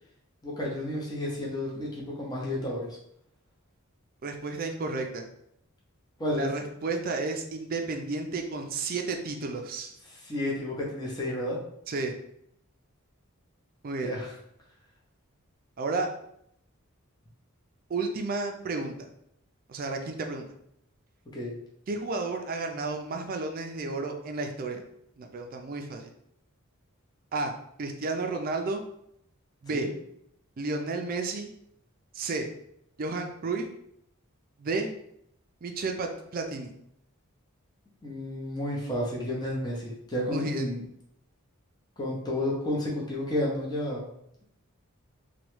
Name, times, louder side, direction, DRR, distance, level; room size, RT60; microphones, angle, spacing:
voice 1, 0.4-3.0 6.2-6.5 10.1-11.6 14.0-14.3 21.3-21.5 29.7-29.9 38.0-40.8 42.0-44.0, left 1 dB, 20° left, -4 dB, 0.7 m, -31 dB
voice 2, 4.2-5.3 6.3-9.9 11.9-12.1 13.8-14.2 15.8-16.1 17.9-18.9 19.7-20.5 21.9-24.8 25.2-26.1 27.3-27.5 27.8-28.8 29.6-29.9 30.6-31.5 32.1-32.5 33.0-33.7 34.6-34.9 35.6-36.7 40.3-40.7, right 3 dB, 45° right, 4 dB, 0.4 m, -32 dB
3.0 x 2.2 x 3.0 m, 0.73 s
head